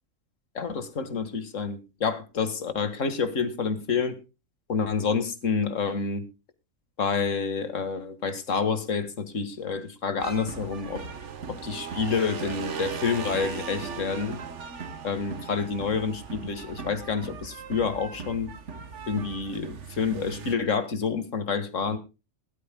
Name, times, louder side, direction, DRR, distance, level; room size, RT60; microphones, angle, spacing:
voice 1, 0.5-4.2 4.7-6.2 7.0-11.0 11.5-14.4 15.0-18.5 19.1-22.0, left 5 dB, 60° left, 11 dB, 2.1 m, -28 dB
sound 1, 10.2-20.5, right 5 dB, 55° right, 1.5 m, -38 dB
20.5 x 13.0 x 2.3 m, 0.29 s
omnidirectional pair, 1.5 m